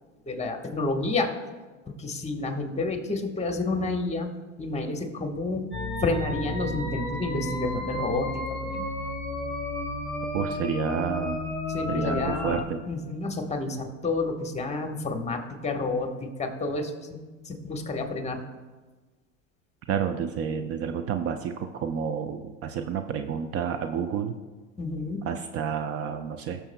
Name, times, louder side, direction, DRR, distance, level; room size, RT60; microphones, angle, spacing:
voice 1, 0.2-1.3 1.9-4.3 4.6-5.7 6.0-8.9 11.7-17.2 17.4-18.4 24.8-25.2, left 3 dB, 15° left, 4 dB, 1.3 m, -30 dB
sound 1, 5.7-12.6, left 2 dB, ahead, 2.8 m, -32 dB
voice 2, 10.3-11.4 11.9-12.8 19.9-24.4 25.2-26.6, right 7 dB, 40° right, 8 dB, 0.6 m, -30 dB
19.5 x 6.9 x 2.2 m, 1.3 s
hypercardioid pair, 85°, 37 cm